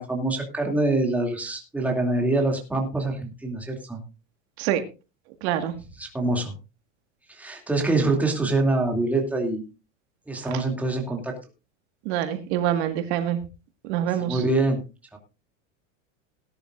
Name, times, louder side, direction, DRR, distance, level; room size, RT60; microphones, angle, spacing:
voice 1, 0.0-4.0 6.0-6.5 7.3-9.6 10.3-11.3 14.2-14.8 15.1-15.2, right 2 dB, 5° right, 1 dB, 2.6 m, -25 dB
voice 2, 5.4-5.7 10.5-10.6 12.0-13.4 13.8-14.4, right 11 dB, 55° right, 7 dB, 1.8 m, -25 dB
18.5 x 10.5 x 2.5 m, 0.30 s
supercardioid pair, 160°, 38 cm